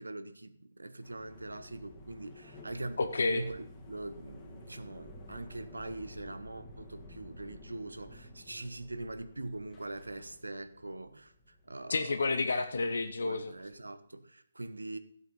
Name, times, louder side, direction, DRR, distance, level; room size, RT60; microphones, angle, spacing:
voice 1, 0.0-12.2 13.2-15.0, right 2 dB, 85° right, 11 dB, 1.1 m, -43 dB
sound 1, 1.0-13.8, left 1 dB, 20° left, 2.1 m, -52 dB
voice 2, 3.0-3.5 11.9-13.5, left 3 dB, 70° left, 9 dB, 0.8 m, -30 dB
13.5 x 8.1 x 5.4 m, 0.66 s
figure-of-eight pair, 145°, 0 cm